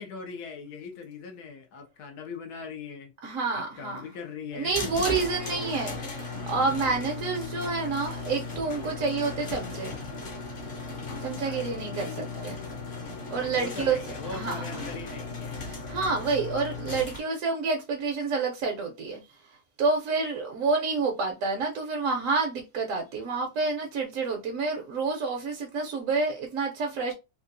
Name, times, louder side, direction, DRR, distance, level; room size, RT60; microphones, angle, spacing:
voice 1, 0.0-3.1 3.5-4.7 5.0-5.1 11.4-11.9 13.5-15.6, left 5 dB, 80° left, 1.2 m, -40 dB
voice 2, 3.2-4.1 4.5-10.0 11.2-12.6 13.3-14.0 14.3-14.7 15.6-19.2 19.8-27.1, right 4 dB, 65° right, 1.0 m, -29 dB
sound 1, 4.7-17.2, left 4 dB, 45° left, 0.8 m, -36 dB
3.6 x 2.3 x 2.6 m
omnidirectional pair, 1.6 m